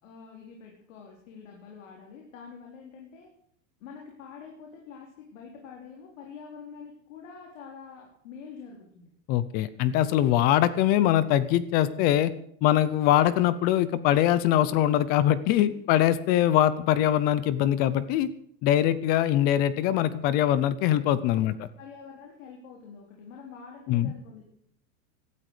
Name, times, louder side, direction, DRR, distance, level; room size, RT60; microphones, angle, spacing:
voice 1, 0.0-3.3 3.8-9.1 15.7-15.8 21.3-24.5, left 6 dB, 85° left, 0 dB, 4.4 m, -46 dB
voice 2, 9.3-12.3 12.6-18.3 18.6-21.6 23.9-24.1, left 12 dB, 25° left, 17 dB, 0.5 m, -23 dB
17.0 x 12.5 x 5.0 m, 0.66 s
supercardioid pair, 175°, 38 cm